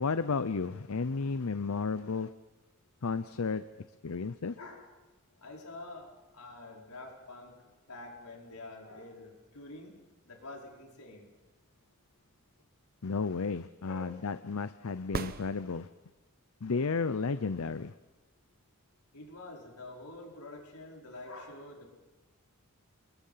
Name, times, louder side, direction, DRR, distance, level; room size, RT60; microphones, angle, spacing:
voice 1, 0.0-2.3 3.0-3.6 4.0-4.6 13.0-15.9 16.6-17.9, left 4 dB, 70° left, 13 dB, 0.7 m, -32 dB
voice 2, 4.6-4.9 5.4-7.5 7.9-9.9 10.2-11.3 13.8-14.2 19.1-21.9, left 2 dB, 90° left, 0 dB, 4.9 m, -47 dB
sound 1, 15.1-16.3 20.1-20.2, right 3 dB, 40° right, 0.9 m, -38 dB
29.0 x 21.0 x 5.7 m, 1.1 s
head